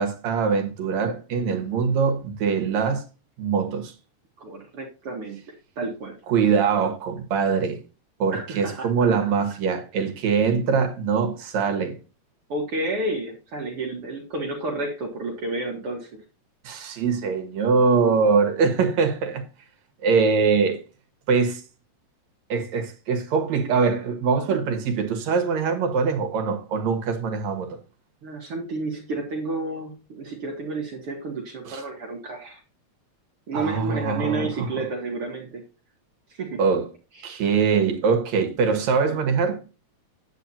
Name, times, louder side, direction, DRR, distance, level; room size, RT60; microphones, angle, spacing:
voice 1, 0.0-3.0 3.4-3.9 6.3-7.8 8.2-12.0 16.6-19.4 20.0-20.8 21.3-21.6 22.5-27.8 31.7-31.8 33.5-34.7 36.6-36.9 37.2-39.6, right 5 dB, 70° right, 2.8 m, -23 dB
voice 2, 4.4-6.2 8.3-9.1 12.5-16.2 28.2-32.6 33.5-35.6 36.3-36.6 37.1-37.5, right 2 dB, 55° right, 2.5 m, -31 dB
9.7 x 9.3 x 2.8 m
omnidirectional pair, 3.3 m